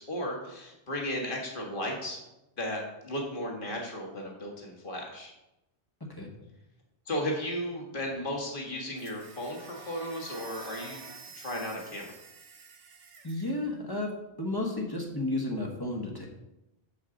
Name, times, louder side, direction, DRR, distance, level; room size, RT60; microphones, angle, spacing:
voice 1, 0.0-2.2 2.6-5.3 7.1-11.0 11.4-12.1, equal, 45° left, 0 dB, 1.7 m, -35 dB
sound 1, 9.0-13.6, right 6 dB, 75° right, 1.2 m, -50 dB
sound 2, 9.1-11.3, right 3 dB, 50° right, 1.7 m, -48 dB
voice 2, 13.2-14.1 14.4-16.3, left 2 dB, 20° left, 0 dB, 1.1 m, -32 dB
7.8 x 7.2 x 3.8 m, 0.93 s
omnidirectional pair, 1.2 m